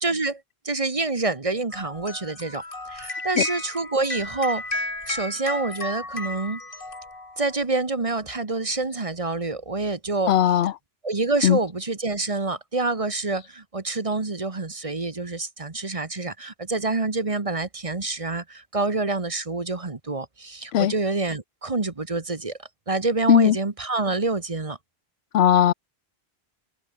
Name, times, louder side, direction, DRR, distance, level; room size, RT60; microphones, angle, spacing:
voice 1, 0.0-2.6 2.9-4.6 5.1-6.6 7.4-10.3 11.0-22.5 22.9-24.8, right 3 dB, 35° right, 1.4 m, -27 dB
sound 1, 1.7-7.6, left 2 dB, 60° left, 3.5 m, -33 dB
voice 2, 10.3-10.7 11.4-11.6 20.7-20.9 23.3-23.6 25.3-25.7, left 11 dB, 80° left, 0.9 m, -18 dB
omnidirectional pair, 1.1 m